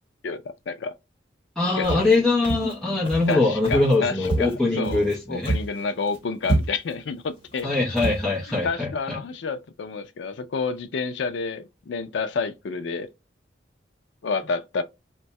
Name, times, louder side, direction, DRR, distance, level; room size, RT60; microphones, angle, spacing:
voice 1, 0.2-0.9 1.8-2.0 3.3-7.7 8.6-13.1 14.2-14.8, left 4 dB, 75° left, 0.4 m, -29 dB
voice 2, 1.6-5.5 7.6-9.2, left 2 dB, 5° left, 0.9 m, -22 dB
Walk footsteps, 1.8-2.2 2.4-2.7 3.0-3.3 3.6-4.0 4.2-5.1 5.4-5.8 6.1-6.2 6.4-7.0 7.5-7.6 8.0-8.2, right 2 dB, 30° left, 1.3 m, -27 dB
2.7 x 2.2 x 4.0 m
head